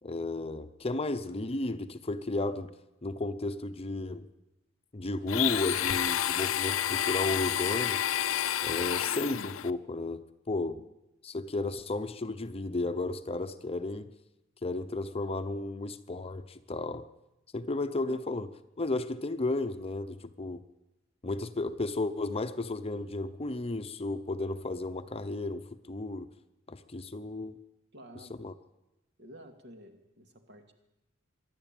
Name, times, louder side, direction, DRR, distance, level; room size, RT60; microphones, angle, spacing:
voice 1, 0.0-2.7 3.0-4.3 4.9-8.0 8.6-10.8 11.2-14.1 14.6-17.1 17.5-18.5 18.8-20.6 21.2-26.3 26.7-27.6 28.4-28.5, left 2 dB, 30° left, 10 dB, 0.8 m, -33 dB
Domestic sounds home sounds, 5.3-9.7, left 11 dB, 80° left, 0.6 m, -29 dB
voice 2, 27.9-28.3 29.2-30.7, equal, 55° right, 5 dB, 2.5 m, -51 dB
24.5 x 11.5 x 9.1 m, 0.95 s
head